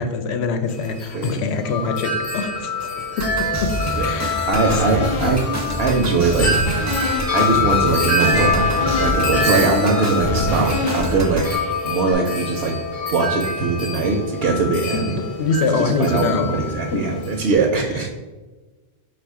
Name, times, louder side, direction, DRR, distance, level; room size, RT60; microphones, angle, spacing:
voice 1, 0.0-3.7 3.9-4.5 15.4-16.5 16.9-17.0, left 4 dB, 90° left, 7 dB, 0.9 m, -24 dB
Wind chime, 0.7-17.5, left 3 dB, 40° left, 0.8 m, -25 dB
sound 1, 3.2-11.6, right 1 dB, 25° right, 0.4 m, -27 dB
sound 2, 4.5-12.1, left 2 dB, 55° left, 0.3 m, -28 dB
voice 2, 4.5-5.4 5.8-6.8 7.3-11.5 11.8-12.8 13.1-15.1 15.8-18.1, right 4 dB, 70° right, 1 dB, 0.8 m, -21 dB
4.6 x 2.4 x 4.6 m, 1.2 s
omnidirectional pair, 1.1 m